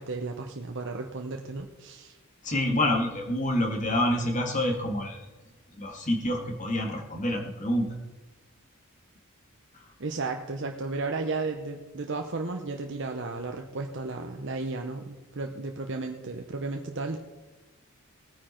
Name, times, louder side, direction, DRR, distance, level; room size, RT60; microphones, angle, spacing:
voice 1, 0.0-2.2 10.0-17.2, right 3 dB, 55° right, 4 dB, 0.8 m, -34 dB
voice 2, 2.4-5.3 5.7-7.9 9.7-9.9, left 1 dB, 35° left, 1 dB, 2.1 m, -27 dB
18.5 x 9.6 x 4.4 m, 1.2 s
head